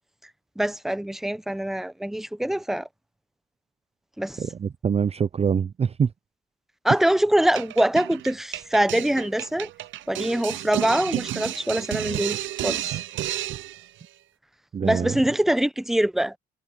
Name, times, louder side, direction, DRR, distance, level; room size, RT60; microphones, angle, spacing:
voice 1, 0.6-2.9 4.2-4.4 6.8-9.7 10.1-13.0 14.8-16.4, right 1 dB, ahead, 0.8 m, -24 dB
voice 2, 4.4-6.1 14.7-15.1, right 7 dB, 30° right, 0.5 m, -24 dB
sound 1, 7.5-13.9, right 14 dB, 75° right, 0.7 m, -31 dB
cardioid pair, 90°, 20 cm